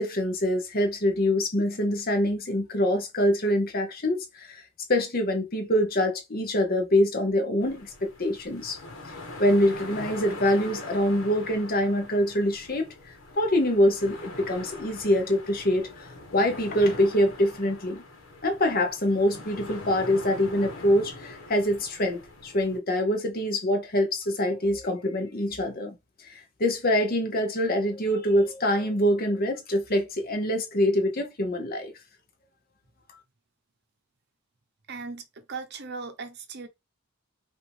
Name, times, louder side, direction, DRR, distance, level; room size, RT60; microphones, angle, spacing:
voice 1, 0.0-8.8 9.4-18.0 18.4-26.0 26.3-31.9, left 1 dB, 45° left, 1.0 m, -25 dB
sound 1, 7.6-22.8, left 2 dB, 70° left, 1.5 m, -43 dB
voice 2, 34.9-36.7, right 4 dB, 50° right, 0.8 m, -38 dB
5.2 x 2.6 x 3.5 m
head